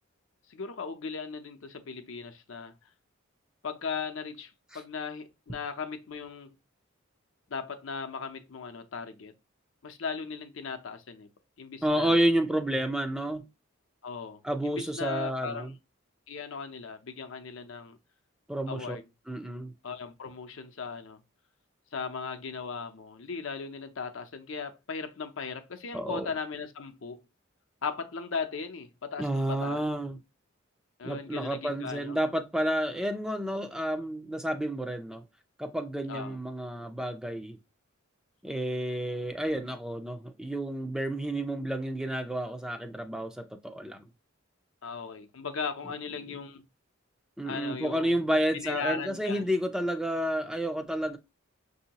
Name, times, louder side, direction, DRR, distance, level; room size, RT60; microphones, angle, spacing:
voice 1, 0.5-2.7 3.6-6.5 7.5-9.3 9.8-11.3 11.6-12.3 14.0-15.7 16.3-18.0 18.7-19.0 19.8-21.2 21.9-27.2 27.8-29.8 31.0-32.2 36.1-36.4 44.8-46.6 47.5-48.2 48.5-49.4, left 5 dB, 70° left, 0.6 m, -37 dB
voice 2, 11.8-13.4 14.4-15.7 18.5-19.0 19.3-19.7 25.9-26.3 29.2-30.2 31.0-35.2 35.6-37.6 38.4-44.0 47.4-51.2, right 1 dB, 5° right, 0.4 m, -30 dB
6.1 x 2.7 x 2.8 m
head